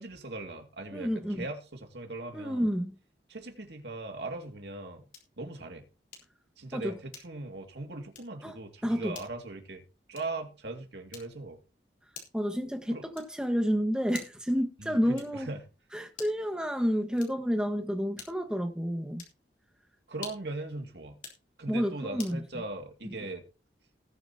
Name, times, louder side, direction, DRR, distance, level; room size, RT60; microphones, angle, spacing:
voice 1, 0.0-2.7 3.3-5.1 5.4-5.9 6.6-9.8 10.1-11.6 12.9-13.1 14.8-15.6 20.1-21.2 21.6-23.4, right 2 dB, 75° right, 2.3 m, -39 dB
voice 2, 0.9-1.4 2.3-3.0 6.7-6.9 8.4-8.6 8.8-9.2 12.3-15.5 15.9-19.2 21.7-22.6 23.0-23.1, equal, 5° right, 1.4 m, -30 dB
Bedside Lamp Switch, 5.1-5.4 6.1-6.4 7.1-7.5 8.1-8.4 9.1-9.4 10.1-10.5 11.1-11.5 12.1-12.5 13.1-13.5 14.1-14.5 15.1-15.5 16.1-16.5 17.1-17.5 18.1-18.6 19.1-19.4 20.1-20.6 21.1-21.5 22.2-22.4, left 6 dB, 45° left, 3.6 m, -48 dB
19.5 x 7.2 x 2.9 m
head